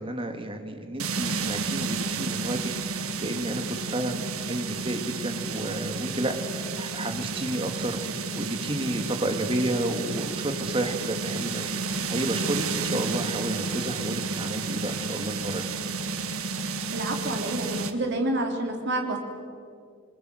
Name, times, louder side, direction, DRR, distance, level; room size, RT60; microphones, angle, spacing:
voice 1, 0.0-8.0 8.4-11.7 12.1-15.6, right 1 dB, 25° right, 6 dB, 2.2 m, -31 dB
sound 1, 1.0-17.9, right 4 dB, 75° right, 1.6 m, -31 dB
voice 2, 16.9-19.2, right 1 dB, 50° right, 3 dB, 3.3 m, -28 dB
28.0 x 21.5 x 7.9 m, 2.3 s
head